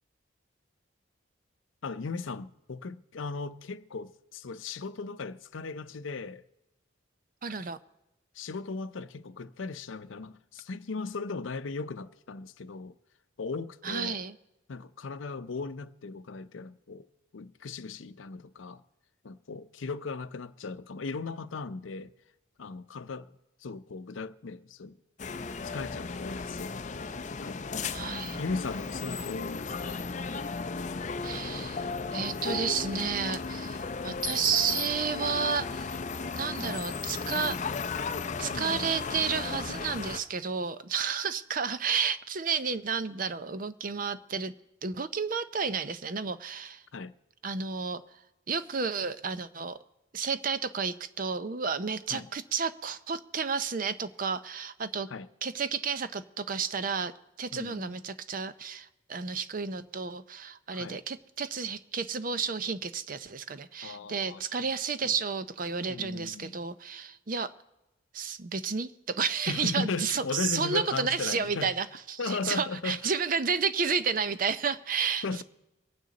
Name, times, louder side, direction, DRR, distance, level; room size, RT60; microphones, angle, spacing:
voice 1, 1.8-6.4 8.3-13.0 13.4-14.2 14.7-17.1 17.3-18.8 19.2-22.1 22.6-23.3 23.6-24.9 25.6-26.8 27.4-27.6 28.4-30.1 38.5-38.9 46.9-47.1 52.1-52.3 55.1-55.3 57.5-57.9 60.7-61.0 63.8-64.4 65.0-65.1 65.9-66.5 69.5-71.7 72.2-73.0 75.2-75.4, left 4 dB, 80° left, 0.6 m, -37 dB
voice 2, 7.4-7.8 13.8-14.3 27.9-28.4 31.2-31.8 32.1-35.9 36.4-37.6 38.4-44.5 44.8-46.8 47.4-48.0 48.5-49.8 50.1-55.1 55.4-57.1 57.4-67.5 68.1-75.4, right 5 dB, 45° right, 0.6 m, -31 dB
sound 1, 25.2-40.2, left 4 dB, 40° left, 0.5 m, -35 dB
24.0 x 9.3 x 4.0 m
head